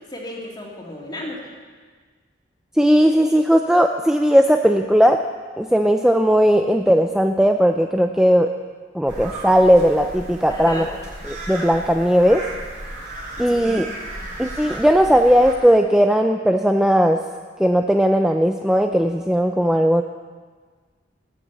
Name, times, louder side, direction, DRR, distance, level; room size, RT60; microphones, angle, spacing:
voice 1, 0.0-1.4 10.5-10.9 13.5-14.1, left 1 dB, 25° left, -2 dB, 2.7 m, -34 dB
voice 2, 2.8-5.2 5.6-8.5 8.9-10.9 11.3-12.4 13.4-13.9 14.4-17.2 17.6-20.0, equal, 5° right, 4 dB, 0.4 m, -17 dB
sound 1, 9.1-15.5, right 1 dB, 40° right, 5.5 m, -35 dB
19.0 x 7.1 x 8.1 m, 1.5 s
head